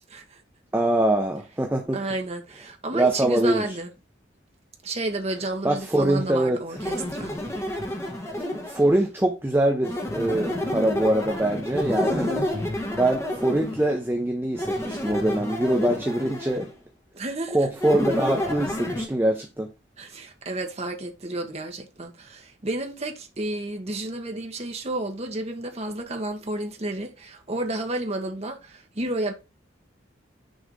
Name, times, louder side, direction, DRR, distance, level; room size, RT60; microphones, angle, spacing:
voice 1, 0.7-2.0 2.9-3.8 5.6-6.6 8.4-12.5 13.0-16.7 17.5-19.7, right 1 dB, 10° right, 0.7 m, -23 dB
voice 2, 1.9-3.9 4.8-7.4 17.1-17.6 20.0-29.3, right 2 dB, 35° right, 1.1 m, -31 dB
sound 1, 6.8-9.0 9.8-14.0 14.5-16.7 17.8-19.1, left 1 dB, 15° left, 1.3 m, -29 dB
6.4 x 3.5 x 5.1 m
head